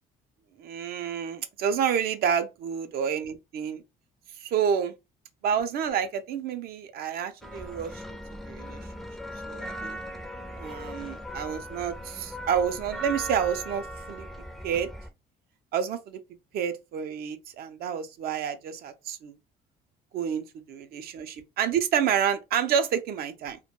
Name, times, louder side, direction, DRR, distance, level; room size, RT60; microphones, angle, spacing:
voice 1, 0.6-3.8 4.4-4.9 5.4-8.2 8.5-8.8 9.5-10.0 10.6-14.3 14.6-14.9 15.7-16.2 16.5-19.3 20.1-23.6, right 8 dB, 65° right, 0.4 m, -29 dB
sound 1, 7.4-15.1, equal, ahead, 0.4 m, -39 dB
2.1 x 2.1 x 2.8 m
cardioid pair, 110°, 17 cm